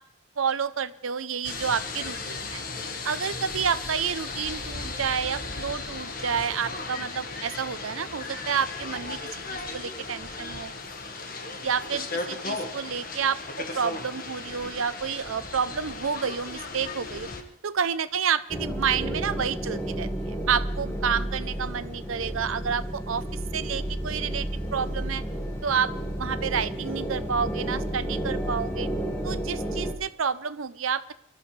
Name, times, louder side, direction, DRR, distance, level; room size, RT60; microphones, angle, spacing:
voice 1, 0.4-2.6 3.0-9.2 9.5-10.7 11.6-13.4 13.7-17.3 17.6-20.1 20.5-23.2 23.5-25.2 25.6-25.9 26.2-28.9 29.2-31.1, right 7 dB, 80° right, 14 dB, 0.7 m, -29 dB
sound 1, 1.4-17.4, left 3 dB, 45° left, 1.6 m, -36 dB
sound 2, 18.5-29.9, right 1 dB, 15° left, 1.6 m, -31 dB
24.5 x 13.5 x 3.3 m, 0.72 s
head